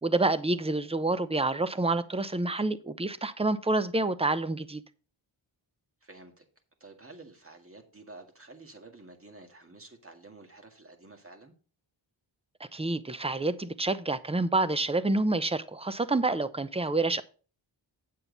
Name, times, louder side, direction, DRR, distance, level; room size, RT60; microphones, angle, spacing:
voice 1, 0.0-4.8 12.6-17.2, right 2 dB, 15° right, 0.7 m, -28 dB
voice 2, 6.0-6.4 6.8-11.5, right 2 dB, 30° right, 2.0 m, -50 dB
9.0 x 7.6 x 4.0 m
wide cardioid pair, 100°, 45 cm